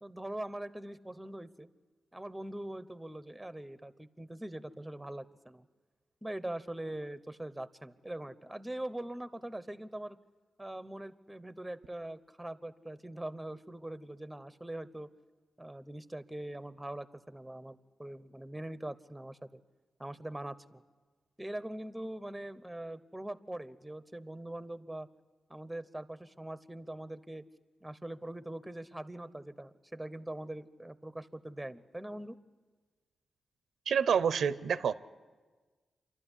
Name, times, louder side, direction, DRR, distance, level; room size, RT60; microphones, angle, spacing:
voice 1, 0.0-1.7 2.1-5.6 6.2-10.2 10.6-15.1 15.6-19.6 20.0-20.8 21.4-25.1 25.5-27.4 27.8-32.4, right 1 dB, 10° right, 14 dB, 1.0 m, -42 dB
voice 2, 33.9-34.9, right 7 dB, 80° right, 14 dB, 0.7 m, -28 dB
28.0 x 12.0 x 10.0 m, 1.4 s
cardioid pair, 65°, 0 cm